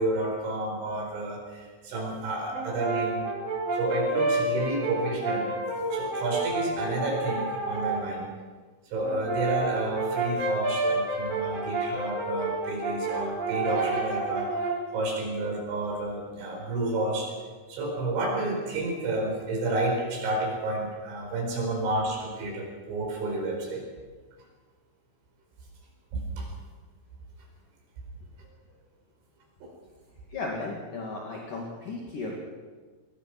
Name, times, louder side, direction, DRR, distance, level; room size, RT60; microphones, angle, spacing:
voice 1, 0.0-3.3 3.7-5.5 5.9-8.3 8.9-17.3 17.7-23.8 26.1-26.5 29.6-29.7, right 2 dB, 75° right, 1 dB, 7.1 m, -30 dB
Brass instrument, 2.5-8.1 9.0-14.9, right 2 dB, 50° right, 6.1 m, -29 dB
voice 2, 30.3-32.4, left 3 dB, 50° left, -2 dB, 3.6 m, -35 dB
23.5 x 20.0 x 6.1 m, 1.4 s
omnidirectional pair, 5.3 m